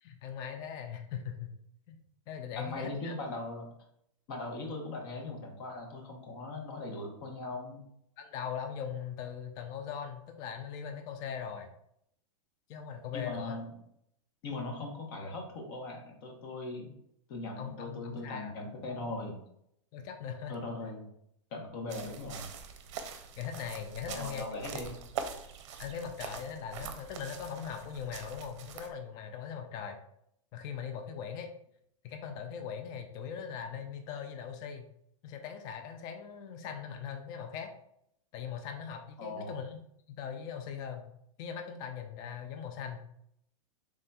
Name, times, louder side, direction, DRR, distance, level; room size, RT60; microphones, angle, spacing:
voice 1, 0.0-1.5 1.9-2.0 2.3-3.1 8.2-11.7 12.7-13.6 17.6-18.6 18.9-19.2 19.9-20.6 23.4-24.5 25.8-30.0 30.5-31.5 32.0-34.9 35.2-37.7 38.3-39.8 40.1-41.1 41.4-43.0, left 7 dB, 25° left, 6 dB, 0.3 m, -40 dB
voice 2, 2.6-3.7 4.3-7.8 13.1-13.7 14.4-16.9 17.3-19.4 20.5-21.1 21.5-22.5 24.1-25.0 39.2-39.6, left 2 dB, 45° left, 2 dB, 1.0 m, -39 dB
sound 1, 21.9-28.9, right 6 dB, 60° right, 0.6 m, -43 dB
4.0 x 3.6 x 2.3 m, 0.72 s
supercardioid pair, 160°, 17 cm